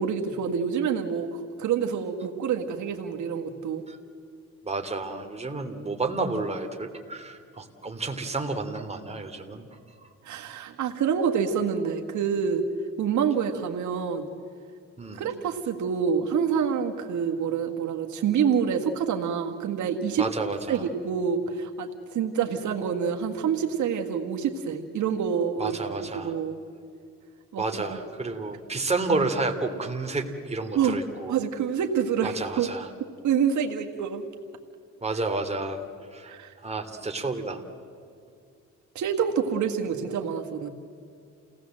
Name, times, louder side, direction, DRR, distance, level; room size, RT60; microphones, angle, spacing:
voice 1, 0.0-3.8 10.2-12.7 13.0-14.3 15.1-20.3 20.7-25.8 26.1-26.6 27.5-27.8 30.7-31.0 31.3-32.7 33.2-34.2 36.3-36.5 38.9-40.7, right 7 dB, 75° right, 3 dB, 1.8 m, -27 dB
voice 2, 4.6-9.7 10.0-10.1 15.0-15.2 20.2-20.8 25.6-26.3 27.6-31.3 32.2-32.9 35.0-35.8 36.1-36.3 36.6-37.6, right 3 dB, 20° right, 4 dB, 2.9 m, -30 dB
29.5 x 18.0 x 7.7 m, 2.4 s
cardioid pair, 90°, 30 cm